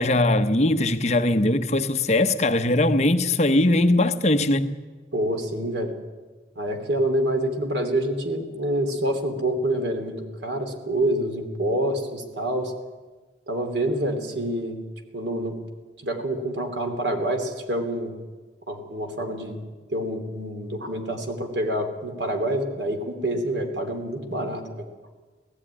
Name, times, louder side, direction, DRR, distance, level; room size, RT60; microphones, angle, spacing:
voice 1, 0.0-4.8, left 1 dB, 40° left, 0.9 m, -20 dB
voice 2, 5.1-5.9 6.5-12.7 13.5-14.8 15.1-15.6 16.0-18.1 18.7-19.6 19.9-24.6, right 1 dB, 75° right, 3.0 m, -27 dB
18.0 x 14.5 x 9.8 m
head